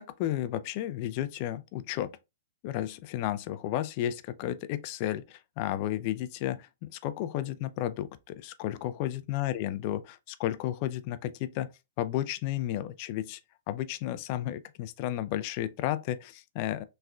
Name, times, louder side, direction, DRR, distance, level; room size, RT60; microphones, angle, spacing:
voice 1, 0.0-2.1 2.6-10.0 10.3-11.7 12.0-13.4 13.7-16.8, left 13 dB, 45° left, 0.4 m, -32 dB
3.6 x 3.2 x 2.2 m
hypercardioid pair, 130°, 0 cm